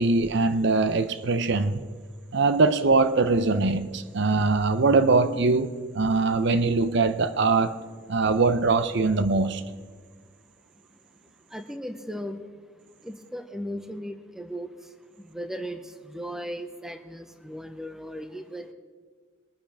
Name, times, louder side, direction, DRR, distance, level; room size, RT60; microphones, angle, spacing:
voice 1, 0.0-1.8 2.3-7.8 8.1-9.6, right 3 dB, 55° right, 0.6 m, -22 dB
voice 2, 11.5-12.4 13.0-14.7 15.3-18.7, equal, ahead, 0.7 m, -36 dB
22.5 x 9.9 x 3.5 m
head